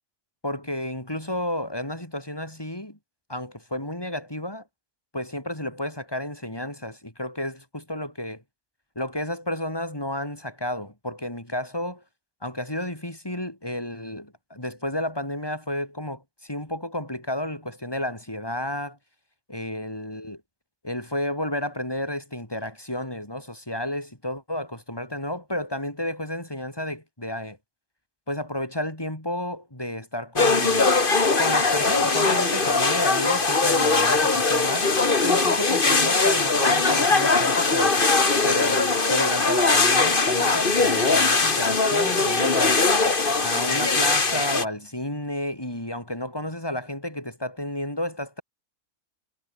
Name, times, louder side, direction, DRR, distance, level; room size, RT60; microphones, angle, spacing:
voice 1, 0.4-3.0 3.3-4.6 5.1-8.4 8.9-12.0 12.4-19.0 19.5-20.4 20.8-27.6 28.3-30.9 31.4-34.9 35.2-38.0 38.4-42.8 43.4-48.4, left 1 dB, 15° left, 5.0 m, -31 dB
sound 1, 30.4-44.6, left 3 dB, 35° left, 2.2 m, -21 dB
omnidirectional pair, 1.5 m